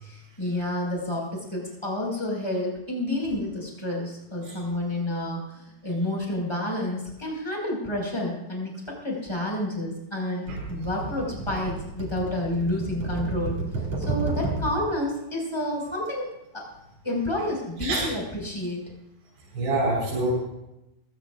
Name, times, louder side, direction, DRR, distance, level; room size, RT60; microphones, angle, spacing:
voice 1, 0.0-13.6 14.0-16.3 16.5-16.6 17.0-18.9, left 1 dB, 5° left, -1 dB, 4.7 m, -29 dB
sound 1, 10.5-14.9 16.0-16.1, right 2 dB, 45° right, 3.0 m, -31 dB
voice 2, 19.5-20.4, right 1 dB, 85° right, -8 dB, 6.5 m, -26 dB
20.5 x 16.0 x 2.5 m, 0.88 s
omnidirectional pair, 4.7 m